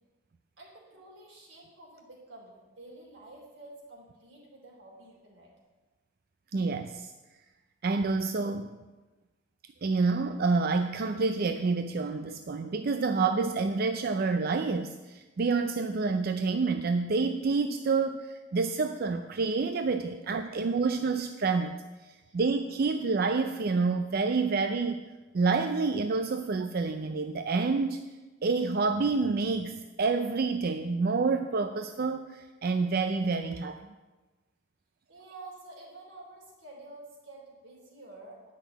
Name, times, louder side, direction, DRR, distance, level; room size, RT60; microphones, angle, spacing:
voice 1, 0.6-5.5 20.1-20.2 22.2-22.3 35.1-38.5, right 2 dB, 90° right, -2 dB, 3.4 m, -49 dB
voice 2, 6.5-7.1 7.8-8.7 9.8-21.7 22.0-25.0 25.3-28.0 28.4-33.8, right 4 dB, 55° right, 7 dB, 0.4 m, -28 dB
10.0 x 6.0 x 8.0 m, 1.2 s
head